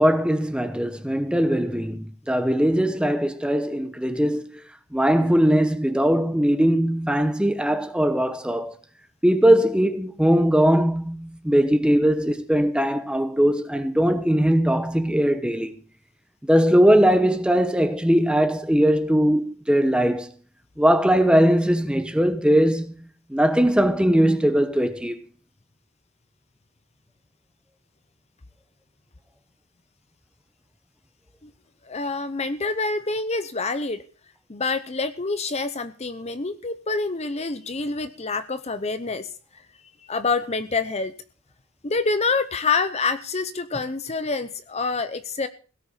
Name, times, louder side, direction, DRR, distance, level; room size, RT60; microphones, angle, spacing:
voice 1, 0.0-4.5 4.9-8.7 9.2-15.7 16.4-20.3 20.8-25.2, equal, 5° right, 0.9 m, -20 dB
voice 2, 31.9-34.0 34.5-39.3 40.1-41.1 41.8-45.5, left 3 dB, 30° left, 0.7 m, -26 dB
17.0 x 6.7 x 7.3 m
head